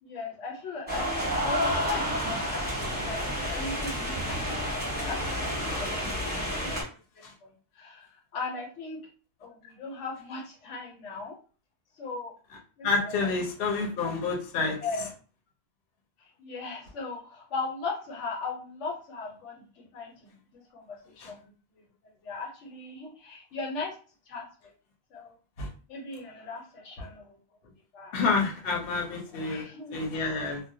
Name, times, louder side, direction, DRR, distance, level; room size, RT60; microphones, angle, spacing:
voice 1, 0.0-6.1 6.5-6.7 7.2-9.0 9.4-11.4 12.0-12.3 12.8-13.9 14.8-15.1 16.4-23.9 24.3-24.7 25.1-25.4 25.9-27.4 27.9-28.2 29.4-30.0, left 3 dB, 90° left, 0 dB, 1.1 m, -38 dB
sound 1, 0.9-6.8, equal, 10° right, 0.9 m, -30 dB
voice 2, 12.8-14.8 21.2-21.3 25.6-25.7 28.1-30.6, left 4 dB, 60° left, 1 dB, 0.8 m, -29 dB
2.3 x 2.0 x 2.6 m, 0.37 s
omnidirectional pair, 1.2 m